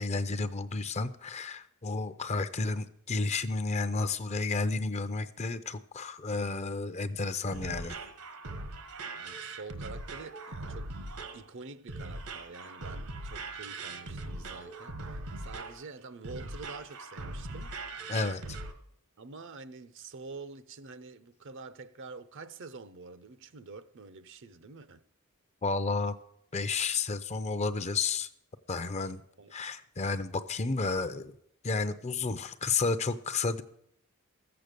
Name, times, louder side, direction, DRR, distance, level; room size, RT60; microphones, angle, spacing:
voice 1, 0.0-8.0 18.1-18.6 25.6-26.2 26.5-28.3 28.7-29.2 29.5-31.3 31.6-33.6, left 3 dB, 30° left, 0.6 m, -31 dB
sound 1, 7.2-18.7, right 2 dB, 75° right, 1.2 m, -41 dB
voice 2, 9.1-10.9 11.3-17.8 18.4-18.5 19.2-25.0 29.4-29.5, right 4 dB, 55° right, 0.6 m, -47 dB
14.0 x 7.8 x 6.7 m
head